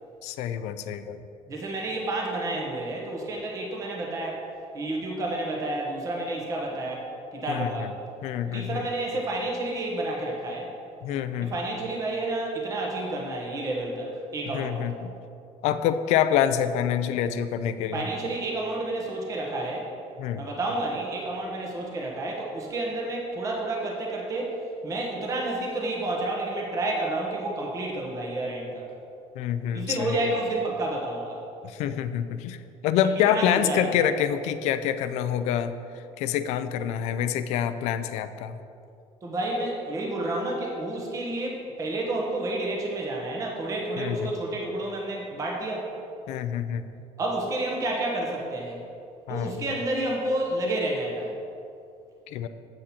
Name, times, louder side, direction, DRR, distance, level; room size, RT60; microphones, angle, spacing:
voice 1, 0.2-1.2 7.5-7.9 8.2-8.8 11.0-11.5 14.5-15.1 15.6-18.1 20.2-20.5 29.3-30.2 31.6-38.6 44.0-44.2 46.3-46.9 49.3-49.5 52.3-52.5, left 9 dB, 70° left, 11 dB, 0.5 m, -27 dB
voice 2, 1.5-4.4 4.7-7.1 7.3-7.9 8.4-10.7 11.4-14.8 17.9-19.9 20.4-24.5 24.8-28.8 29.7-31.4 33.3-33.9 39.2-45.9 47.2-48.8 49.3-51.4, right 2 dB, 30° right, -2 dB, 1.3 m, -30 dB
8.4 x 7.6 x 4.3 m, 2.5 s
cardioid pair, 170°, 12 cm